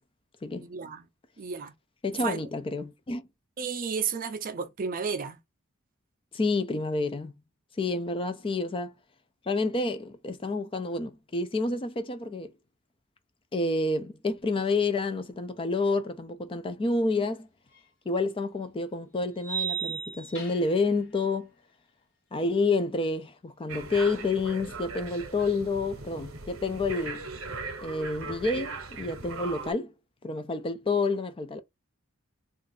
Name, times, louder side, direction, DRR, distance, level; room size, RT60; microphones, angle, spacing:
voice 1, 0.6-1.1 1.4-1.7 2.2-2.4 3.6-5.4, right 6 dB, 40° right, 0.5 m, -32 dB
voice 2, 2.0-3.2 6.3-7.3 7.8-8.9 9.5-12.5 13.5-17.5 18.1-21.5 22.3-27.3 27.8-29.9 30.2-31.6, left 3 dB, 25° left, 0.4 m, -29 dB
sound 1, 17.8-17.9 19.4-20.9, right 7 dB, 65° left, 1.2 m, -34 dB
sound 2, 23.7-29.7, right 3 dB, 70° right, 0.8 m, -39 dB
2.5 x 2.4 x 4.0 m
head